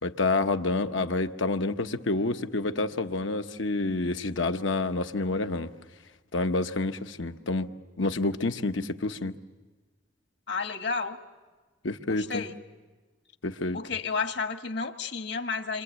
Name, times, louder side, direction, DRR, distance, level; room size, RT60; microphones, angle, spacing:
voice 1, 0.0-5.7 6.3-7.7 8.0-9.3 11.8-12.4 13.4-13.8, left 2 dB, 80° left, 8 dB, 1.1 m, -28 dB
voice 2, 10.5-11.2 12.1-12.6 13.7-15.8, left 4 dB, 60° left, 6 dB, 1.6 m, -31 dB
28.0 x 25.5 x 8.2 m, 1.3 s
head